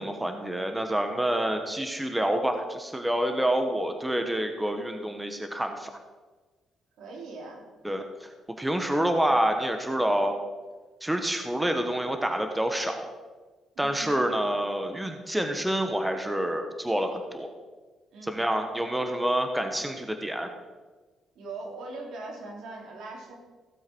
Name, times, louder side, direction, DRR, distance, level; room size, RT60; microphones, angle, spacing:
voice 1, 0.0-5.9 7.8-8.3 8.6-10.4 11.0-13.1 13.8-17.5 18.2-20.5, right 1 dB, 10° right, 6 dB, 1.2 m, -27 dB
voice 2, 7.0-7.6 13.7-14.0 18.1-18.3 21.3-23.3, right 3 dB, 80° right, -1 dB, 3.3 m, -40 dB
16.5 x 7.8 x 4.6 m, 1.3 s
cardioid pair, 90°, 0 cm